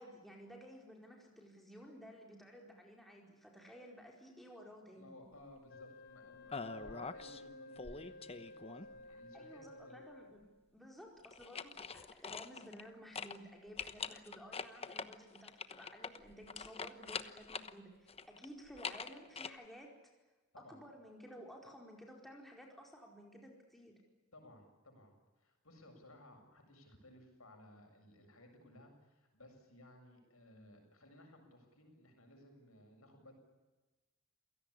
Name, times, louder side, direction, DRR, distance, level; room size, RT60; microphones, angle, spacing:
voice 1, 0.0-5.2 9.1-10.5 10.7-19.9 20.6-24.0, equal, ahead, 0 dB, 4.6 m, -54 dB
voice 2, 4.9-10.0 20.5-20.8 24.3-33.3, left 1 dB, 80° left, 4 dB, 7.5 m, -59 dB
Wind instrument woodwind instrument, 5.7-10.4, left 2 dB, 55° left, 3.9 m, -54 dB
sound 1, 6.5-7.4 7.8-9.1 11.2-12.9 13.1-13.4 13.8-17.7 18.1-19.5, left 5 dB, 30° left, 1.1 m, -44 dB
28.5 x 17.5 x 10.0 m, 1.2 s
head